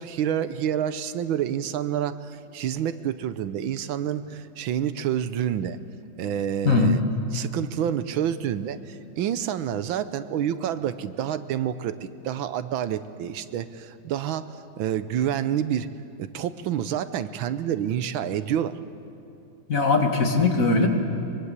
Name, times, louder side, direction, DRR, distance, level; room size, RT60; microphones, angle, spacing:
voice 1, 0.0-5.8 6.2-7.0 7.3-15.9 16.2-18.8, right 9 dB, 85° right, 13 dB, 1.6 m, -28 dB
voice 2, 6.6-7.0 19.7-20.9, left 3 dB, 45° left, 3 dB, 2.4 m, -20 dB
23.5 x 23.0 x 8.2 m, 2.6 s
omnidirectional pair, 2.1 m